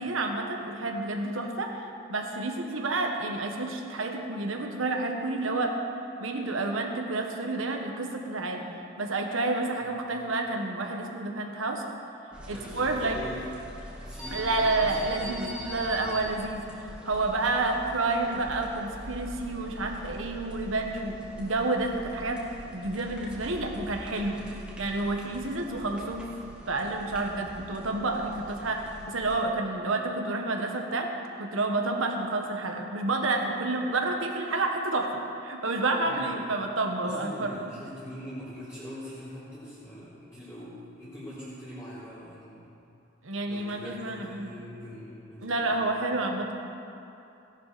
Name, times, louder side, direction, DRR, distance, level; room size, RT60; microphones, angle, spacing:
voice 1, 0.0-5.7 6.2-8.7 9.0-11.8 12.5-13.2 14.3-22.4 22.7-26.3 26.7-31.1 31.4-37.6 43.2-44.5 45.4-46.5, right 2 dB, 85° right, 2 dB, 1.4 m, -29 dB
sound 1, 12.3-29.4, equal, 5° right, 1.5 m, -43 dB
voice 2, 12.5-13.4 14.0-16.2 24.4-24.6 36.0-36.4 37.0-42.7 43.5-46.0, equal, 15° left, -15 dB, 3.7 m, -43 dB
17.5 x 11.0 x 4.2 m, 2.8 s
head